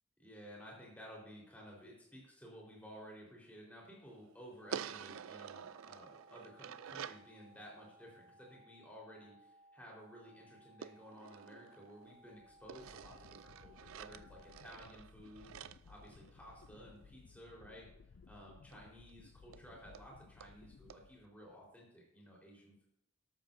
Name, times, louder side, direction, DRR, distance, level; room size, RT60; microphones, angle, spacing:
voice 1, 0.2-15.6 15.9-17.9 18.3-22.9, equal, 5° left, -3 dB, 4.2 m, -55 dB
sound 1, 4.6-14.6, right 1 dB, 20° right, 4.5 m, -64 dB
sound 2, 4.7-7.3 10.8-12.2 12.7-16.8 18.7-18.8 19.1-19.2 19.5-19.6 19.9-20.1 20.4-20.5 20.9-21.0, right 8 dB, 85° right, 0.4 m, -49 dB
sound 3, 12.1-21.7, left 4 dB, 55° left, 0.4 m, -60 dB
13.0 x 13.0 x 2.7 m, 0.78 s
head